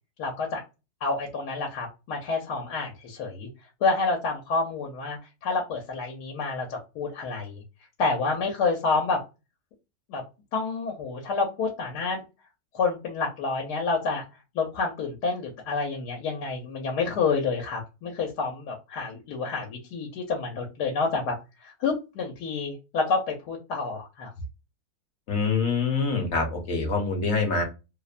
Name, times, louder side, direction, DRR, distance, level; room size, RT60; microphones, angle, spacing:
voice 1, 0.2-0.6 1.0-3.5 3.8-7.6 8.0-9.2 10.1-10.2 10.5-12.2 12.7-14.2 14.5-21.3 21.6-24.3, left 4 dB, 85° left, 0 dB, 1.2 m, -28 dB
voice 2, 25.3-27.6, left 4 dB, 55° left, 2 dB, 0.8 m, -25 dB
2.9 x 2.1 x 2.3 m, 0.28 s
omnidirectional pair, 1.7 m